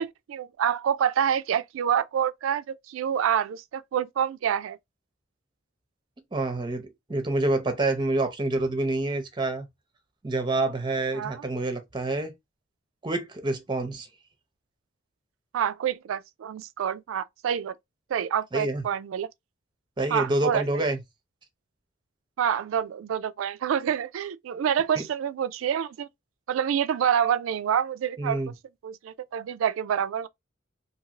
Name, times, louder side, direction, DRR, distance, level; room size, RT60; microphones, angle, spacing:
voice 1, 0.0-4.8 11.1-11.4 15.5-17.7 18.1-19.3 20.1-20.8 22.4-26.1 26.5-28.4 28.8-30.3, right 8 dB, 85° right, 0.3 m, -27 dB
voice 2, 6.3-9.7 10.2-12.3 13.0-14.1 18.5-18.8 20.0-21.0 24.9-25.0 28.2-28.5, right 2 dB, 25° right, 0.6 m, -27 dB
2.8 x 2.6 x 2.8 m
head